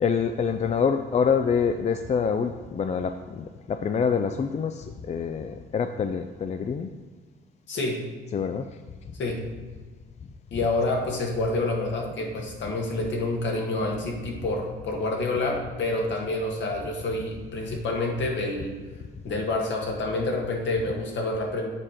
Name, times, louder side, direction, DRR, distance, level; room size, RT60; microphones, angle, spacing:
voice 1, 0.0-6.9 8.3-8.7, left 6 dB, 35° left, 7 dB, 0.4 m, -26 dB
voice 2, 7.7-8.0 9.2-9.4 10.5-18.7 19.2-21.7, left 2 dB, 65° left, 1 dB, 1.6 m, -28 dB
7.6 x 4.9 x 4.4 m, 1.4 s
cardioid pair, 90°, 20 cm